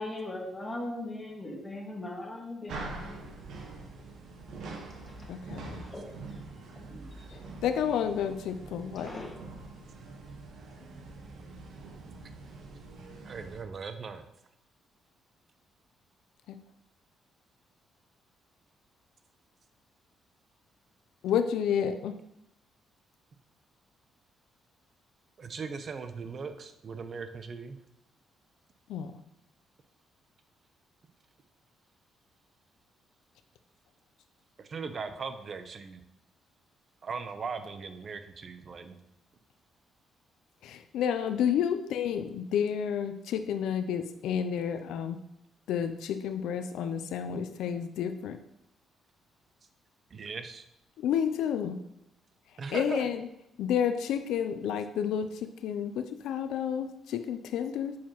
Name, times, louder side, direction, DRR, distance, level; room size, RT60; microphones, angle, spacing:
voice 1, 0.0-2.7 5.8-6.0 6.9-7.4 9.0-9.4, left 1 dB, 25° left, -1 dB, 1.7 m, -39 dB
sound 1, 2.7-13.6, right 3 dB, 80° right, 1.1 m, -44 dB
voice 2, 5.3-5.8 7.6-9.2 16.5-16.6 21.2-22.1 28.9-29.1 40.6-45.2 45.7-48.4 51.0-51.8 52.7-53.2 53.6-55.3 55.6-57.9, left 8 dB, 85° left, 9 dB, 0.4 m, -30 dB
voice 3, 13.2-14.2 25.4-27.8 34.6-36.0 37.0-39.0 50.1-50.6 52.6-53.1, right 5 dB, 45° right, 9 dB, 0.6 m, -39 dB
7.2 x 4.6 x 2.9 m, 0.81 s
cardioid pair, 90°, 0 cm